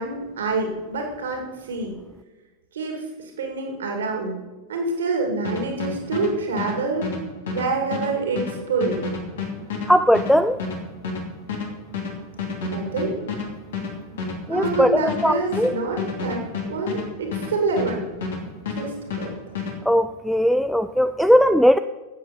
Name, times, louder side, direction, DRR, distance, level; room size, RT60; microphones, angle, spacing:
voice 1, 0.0-1.9 2.7-4.4 4.7-7.1 7.5-9.0 12.6-13.2 14.5-18.0 18.8-19.3, right 3 dB, 65° right, 2 dB, 2.4 m, -27 dB
sound 1, 5.4-18.4 18.7-19.8, left 4 dB, 60° left, 2.7 m, -30 dB
voice 2, 9.9-10.6 14.5-15.7 19.9-21.8, equal, ahead, 12 dB, 0.4 m, -18 dB
13.5 x 8.5 x 5.2 m, 1.2 s
figure-of-eight pair, 90°, 0 cm